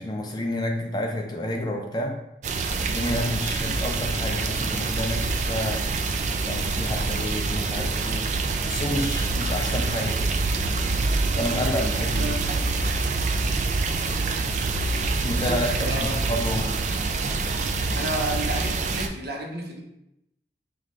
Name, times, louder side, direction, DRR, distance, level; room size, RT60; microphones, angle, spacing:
voice 1, 0.0-2.2 2.8-5.8 6.4-8.3 8.6-10.4 11.4-12.3 15.2-16.7, left 1 dB, 25° left, 1 dB, 0.5 m, -29 dB
sound 1, 2.4-19.1, right 3 dB, 40° right, 0.3 m, -26 dB
voice 2, 15.4-16.2 17.9-19.8, right 1 dB, 60° right, 0 dB, 0.8 m, -31 dB
5.6 x 2.5 x 3.2 m, 0.83 s
head